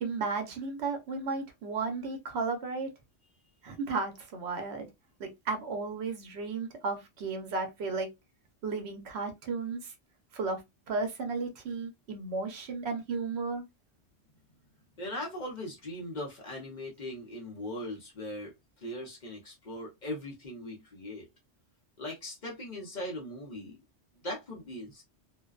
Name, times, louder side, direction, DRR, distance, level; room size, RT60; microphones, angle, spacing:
voice 1, 0.0-2.9 3.6-4.9 5.2-8.1 8.6-9.9 10.3-10.6 10.9-13.6, right 4 dB, 70° right, 0.9 m, -34 dB
voice 2, 15.0-21.3 22.0-23.8 24.2-25.0, left 1 dB, 45° left, 0.8 m, -39 dB
2.5 x 2.2 x 2.3 m
omnidirectional pair, 1.2 m